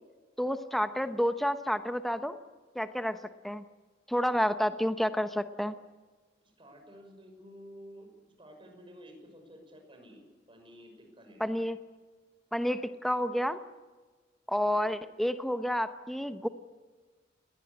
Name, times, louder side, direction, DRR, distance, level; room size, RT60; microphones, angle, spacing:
voice 1, 0.4-2.4 2.7-3.2 3.4-3.6 4.1-5.8 11.4-11.8 12.5-13.6 14.5-16.5, equal, ahead, 9 dB, 0.9 m, -30 dB
voice 2, 6.4-8.1 8.4-10.2 10.5-11.5 14.7-14.9, equal, 25° right, 3 dB, 6.0 m, -52 dB
20.0 x 19.0 x 10.0 m, 1.4 s
head